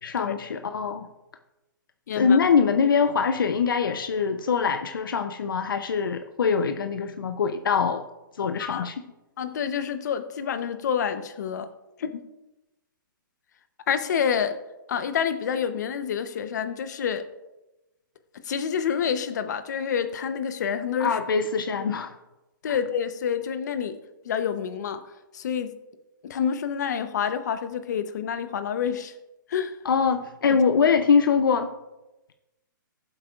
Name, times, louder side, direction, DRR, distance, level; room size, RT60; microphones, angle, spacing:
voice 1, 0.0-1.1 2.2-8.0 8.4-9.0 21.0-22.1 22.7-22.8 29.8-31.7, left 6 dB, 80° left, 8 dB, 0.7 m, -23 dB
voice 2, 2.1-2.4 8.6-8.9 9.4-11.7 12.0-12.2 13.9-14.6 14.9-17.2 18.4-21.2 22.6-23.9 24.2-25.0 25.3-25.7 26.2-29.1 29.5-29.8 30.5-30.6, left 7 dB, 55° left, 10 dB, 0.9 m, -28 dB
17.0 x 7.8 x 2.5 m, 1.0 s
hypercardioid pair, 160°, 11 cm